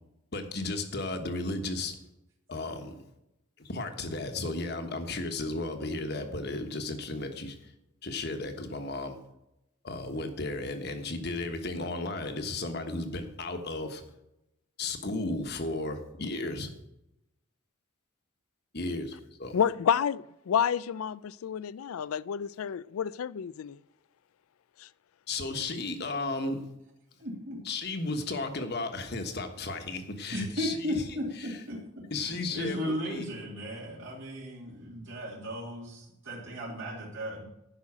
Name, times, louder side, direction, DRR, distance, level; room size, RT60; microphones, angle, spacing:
voice 1, 0.3-1.9 2.5-2.9 3.6-7.7 8.0-9.2 9.8-14.1 14.8-16.7 18.7-19.6 25.3-26.6 27.6-31.0 32.1-33.2, left 2 dB, 50° left, 1.3 m, -34 dB
voice 2, 19.5-23.8 24.8-24.9, left 8 dB, 85° left, 0.4 m, -29 dB
voice 3, 27.2-27.6 30.3-37.5, equal, 65° right, 2.8 m, -36 dB
11.0 x 5.6 x 8.7 m
head